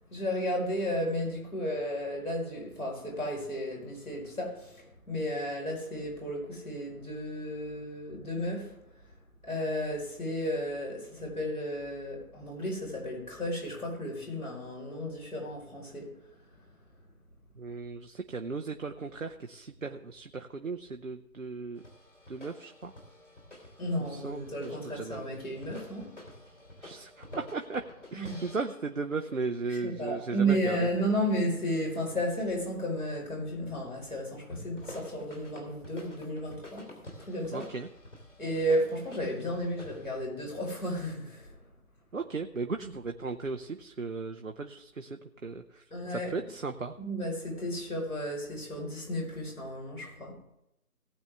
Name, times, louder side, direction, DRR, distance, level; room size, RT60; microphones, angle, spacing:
voice 1, 0.1-8.8 9.4-16.1 23.8-26.1 28.1-28.4 29.7-36.9 37.2-37.7 38.4-41.5 42.8-42.9 45.9-46.4 47.0-50.4, equal, 70° left, 4.8 m, -33 dB
voice 2, 17.6-21.8 22.3-22.9 24.1-25.3 26.8-27.8 28.1-30.9 37.5-37.9 42.1-45.8 46.1-46.9, right 4 dB, 60° right, 0.7 m, -36 dB
sound 1, 21.8-29.4 34.7-40.1, left 1 dB, 50° left, 3.2 m, -49 dB
18.5 x 8.0 x 3.5 m
figure-of-eight pair, 160°, 45 cm